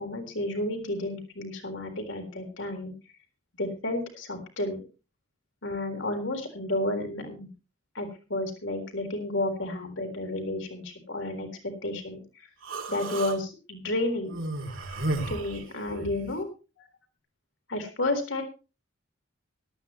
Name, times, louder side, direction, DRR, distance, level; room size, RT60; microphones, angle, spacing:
voice 1, 0.0-2.9 3.6-4.8 5.6-7.5 7.9-11.5 11.8-12.2 12.9-14.4 15.3-16.5 16.8-16.9 17.7-18.4, left 1 dB, 70° left, 4 dB, 3.8 m, -31 dB
Human voice, 12.6-13.4 14.3-16.3, right 2 dB, 85° right, 2.8 m, -33 dB
17.5 x 13.0 x 3.1 m, 0.32 s
head